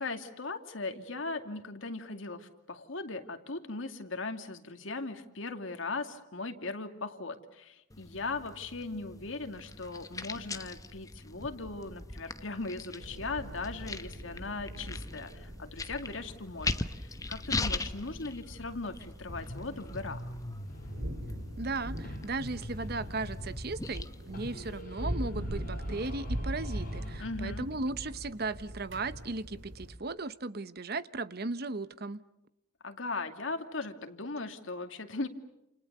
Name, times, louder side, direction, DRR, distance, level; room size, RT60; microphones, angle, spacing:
voice 1, 0.0-20.3 27.2-27.7 32.8-35.3, left 3 dB, 85° left, 7 dB, 2.4 m, -38 dB
sound 1, 7.9-24.8, left 3 dB, 20° left, 1.1 m, -41 dB
sound 2, 13.0-30.0, equal, 75° right, 3.0 m, -42 dB
sound 3, 19.3-21.8 22.0-24.0 24.3-27.8, equal, 50° left, 5.8 m, -43 dB
voice 2, 21.6-32.2, right 3 dB, 55° right, 14 dB, 1.0 m, -36 dB
29.0 x 28.5 x 6.8 m, 0.88 s
head